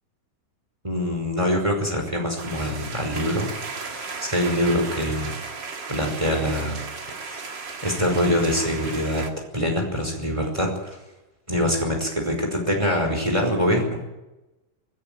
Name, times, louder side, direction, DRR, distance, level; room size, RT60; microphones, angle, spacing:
voice 1, 0.8-5.3 5.9-6.8 7.2-7.4 7.8-9.3 9.5-11.0 11.5-14.1, equal, 5° right, 2 dB, 4.7 m, -24 dB
sound 1, 2.4-9.3, right 4 dB, 45° right, 1.6 m, -35 dB
19.5 x 17.0 x 9.4 m, 1.0 s
omnidirectional pair, 4.8 m